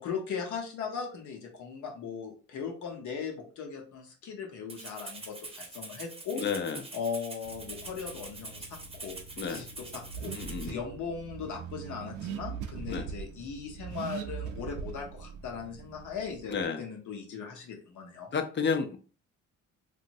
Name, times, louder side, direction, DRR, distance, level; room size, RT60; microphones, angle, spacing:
voice 1, 0.0-6.4 6.9-9.2 9.5-10.3 10.6-18.3, left 6 dB, 75° left, 1.0 m, -38 dB
Rattle (instrument), 4.7-10.7, right 3 dB, 20° right, 0.8 m, -44 dB
voice 2, 6.3-6.8 9.4-9.6 10.3-10.8 12.9-13.1 16.5-16.8 18.3-19.0, left 5 dB, 40° left, 0.5 m, -31 dB
Car / Accelerating revving vroom, 7.4-16.6, right 7 dB, 80° right, 0.5 m, -42 dB
2.9 x 2.6 x 2.6 m
cardioid pair, 90°, 30 cm